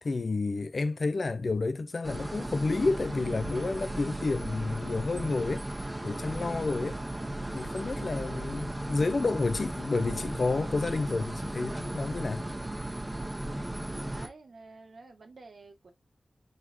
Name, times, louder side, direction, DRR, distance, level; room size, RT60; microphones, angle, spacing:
voice 1, 0.0-5.7 6.0-7.0 7.5-12.5, left 3 dB, 70° left, 0.6 m, -30 dB
sound 1, 2.0-14.3, right 1 dB, 25° right, 1.3 m, -36 dB
voice 2, 13.9-15.9, right 3 dB, 85° right, 1.4 m, -50 dB
4.6 x 4.0 x 2.6 m
cardioid pair, 50°, 0 cm